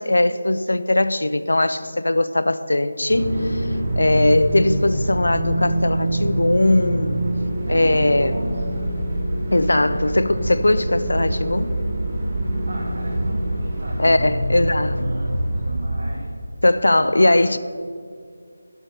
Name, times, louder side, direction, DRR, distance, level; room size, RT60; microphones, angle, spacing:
voice 1, 0.0-3.7 4.0-7.2 7.7-8.4 9.5-11.7 14.0-15.0 16.6-17.6, left 1 dB, 75° left, 0.5 m, -19 dB
sound 1, 3.1-16.5, right 1 dB, 35° right, 1.4 m, -25 dB
voice 2, 7.6-9.0 12.7-16.3 16.9-17.4, right 1 dB, 70° right, 1.4 m, -36 dB
7.2 x 6.4 x 6.8 m
figure-of-eight pair, 165°, 0 cm